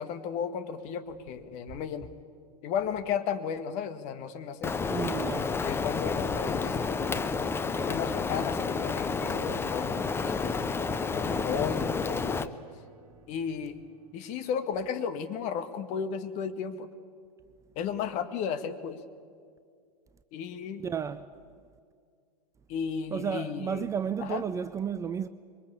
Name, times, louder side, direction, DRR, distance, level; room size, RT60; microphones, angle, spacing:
voice 1, 0.0-2.1 2.6-4.8 5.6-7.3 7.8-10.7 11.1-12.5 13.3-13.8 14.1-16.9 17.8-19.0 20.3-20.8 22.7-23.9 24.2-24.4, left 7 dB, 35° left, 1.7 m, -34 dB
Rain, 4.6-12.5, left 4 dB, 10° left, 0.8 m, -30 dB
voice 2, 4.9-5.6 20.8-21.3 23.1-25.3, right 7 dB, 15° right, 0.5 m, -32 dB
sound 1, 10.9-14.5, right 4 dB, 35° right, 3.1 m, -53 dB
26.0 x 22.5 x 8.5 m
figure-of-eight pair, 100°, 20 cm